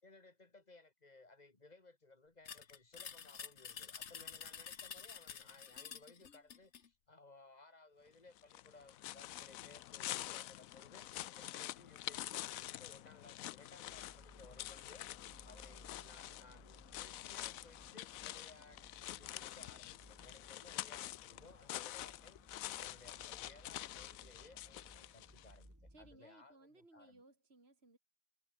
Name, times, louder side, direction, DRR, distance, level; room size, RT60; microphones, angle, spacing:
voice 1, 0.0-15.1 15.4-27.2, left 3 dB, 25° left, 2.7 m, -61 dB
sound 1, 2.5-6.9, left 7 dB, 50° left, 1.4 m, -49 dB
sound 2, 8.4-25.6, left 14 dB, 75° left, 1.0 m, -47 dB
sound 3, 13.9-26.2, equal, 10° right, 6.9 m, -62 dB
voice 2, 25.9-28.0, right 2 dB, 40° right, 4.1 m, -63 dB
omnidirectional pair, 1.6 m